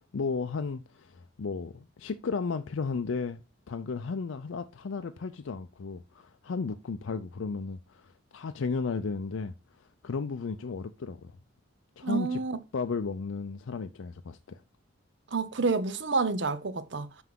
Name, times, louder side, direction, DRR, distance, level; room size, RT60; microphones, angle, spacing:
voice 1, 0.1-11.4 12.0-12.4 12.7-14.6, left 4 dB, 85° left, 0.5 m, -34 dB
voice 2, 12.0-12.6 15.3-17.2, right 4 dB, 65° right, 0.7 m, -29 dB
6.0 x 5.7 x 3.7 m
head